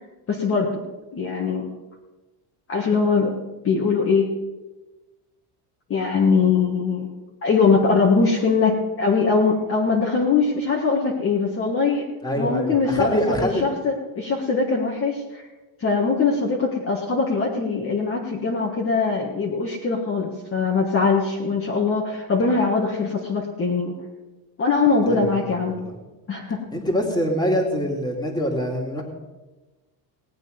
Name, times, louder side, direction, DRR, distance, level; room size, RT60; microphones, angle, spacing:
voice 1, 0.3-0.8 1.1-1.6 2.7-3.3 3.6-4.3 5.9-7.1 7.4-12.1 12.4-15.4 15.8-23.9 24.6-25.7 26.3-26.7, left 4 dB, 30° left, -2 dB, 1.6 m, -21 dB
voice 2, 12.2-13.7 25.1-25.9 26.7-29.0, equal, 10° left, 1 dB, 2.4 m, -25 dB
18.0 x 8.8 x 5.2 m, 1.2 s
cardioid pair, 140°, 47 cm